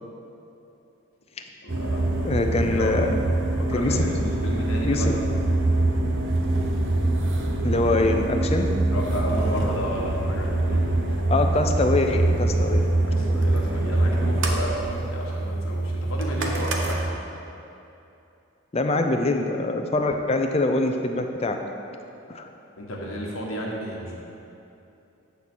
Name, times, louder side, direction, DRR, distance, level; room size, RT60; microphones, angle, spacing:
voice 1, 1.6-2.2 2.7-3.0 3.6-5.1 5.5-5.6 8.9-10.8 13.1-17.0 22.8-24.1, equal, 70° left, -2 dB, 1.3 m, -32 dB
sound 1, 1.7-17.1, right 2 dB, 55° right, 0.8 m, -24 dB
voice 2, 2.2-3.1 3.7-4.1 4.8-5.2 7.6-8.7 11.3-12.9 18.7-21.6 22.3-22.5, left 2 dB, 30° left, 5 dB, 0.4 m, -24 dB
8.7 x 4.1 x 6.1 m, 2.8 s
head